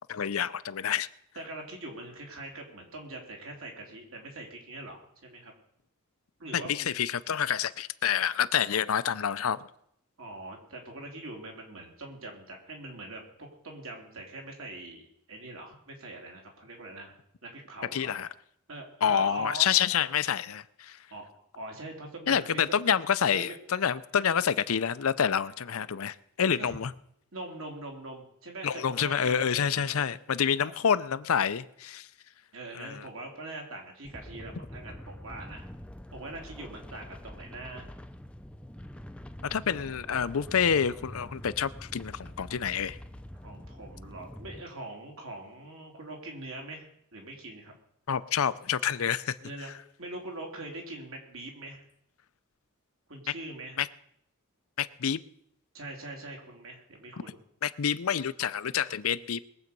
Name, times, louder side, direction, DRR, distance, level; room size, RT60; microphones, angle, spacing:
voice 1, 0.1-1.1 6.5-9.6 17.9-18.3 19.0-21.0 22.3-26.9 28.6-32.1 32.7-33.1 39.4-43.0 48.1-49.4 53.8-53.9 54.8-55.2 57.6-59.4, left 8 dB, 70° left, 0.6 m, -28 dB
voice 2, 1.4-5.5 6.4-6.9 10.2-17.2 17.4-18.2 18.7-19.7 21.1-21.2 21.6-22.6 23.3-23.6 26.6-26.8 27.3-30.2 30.5-30.7 32.5-35.7 36.1-37.9 43.4-47.7 49.4-49.7 50.0-51.8 53.1-53.8 55.7-57.4, right 2 dB, 65° right, 3.5 m, -42 dB
sound 1, 34.0-44.6, equal, 5° left, 0.5 m, -45 dB
21.5 x 7.9 x 5.3 m
head